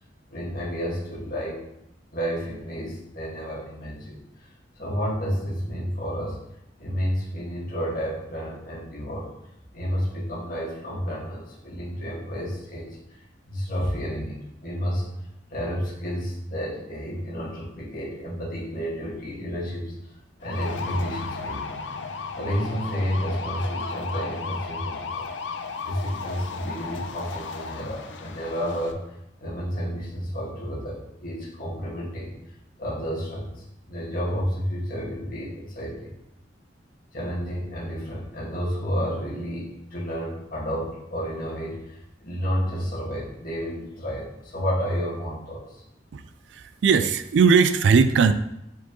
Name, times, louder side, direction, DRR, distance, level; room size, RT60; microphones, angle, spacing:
voice 1, 0.3-1.6 2.1-4.5 4.8-6.4 6.8-9.3 9.7-13.0 13.5-15.1 15.5-19.9 20.4-21.8 22.4-25.3 25.8-29.0 29.4-32.3 32.8-36.1 37.1-45.8, equal, 50° left, -5 dB, 1.8 m, -31 dB
sound 1, 20.4-28.9, left 4 dB, 75° left, 0.6 m, -34 dB
voice 2, 46.5-48.3, right 5 dB, 70° right, 11 dB, 0.3 m, -19 dB
6.9 x 4.5 x 3.0 m, 0.82 s
head